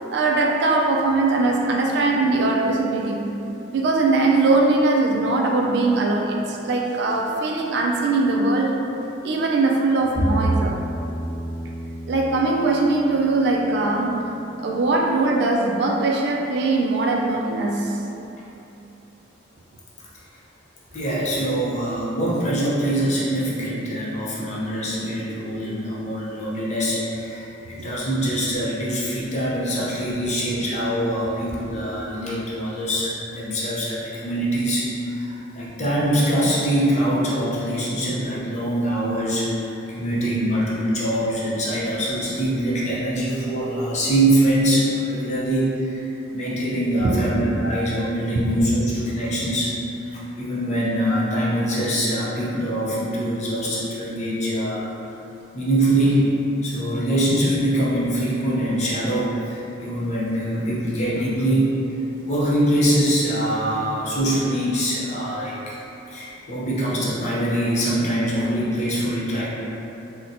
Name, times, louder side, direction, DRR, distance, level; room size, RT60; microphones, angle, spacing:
voice 1, 0.1-3.4 3.7-8.8 9.2-10.8 12.1-14.2 14.6-18.0 47.0-47.3 48.5-48.6, right 3 dB, 60° right, 0 dB, 0.3 m, -21 dB
Bowed string instrument, 10.1-16.5, right 1 dB, 10° left, 0.9 m, -30 dB
voice 2, 20.9-46.0 46.3-49.7 50.1-54.9 55.5-56.3 56.6-61.7 62.2-65.8 66.1-69.5, right 1 dB, 35° left, -7 dB, 0.6 m, -23 dB
3.9 x 2.2 x 2.6 m, 2.9 s
head